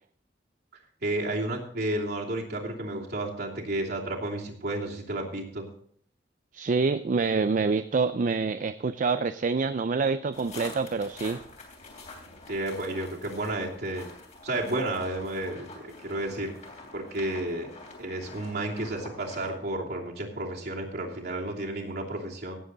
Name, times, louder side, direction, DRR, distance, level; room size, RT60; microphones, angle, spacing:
voice 1, 1.0-5.7 12.5-14.1 14.4-16.5 16.9-17.7 18.0-22.6, right 1 dB, 65° right, -1 dB, 2.8 m, -32 dB
voice 2, 6.5-11.4, right 4 dB, 45° right, 11 dB, 0.4 m, -26 dB
sound 1, 10.3-19.5, left 3 dB, 45° left, 3.2 m, -46 dB
17.0 x 7.7 x 4.0 m, 0.63 s
head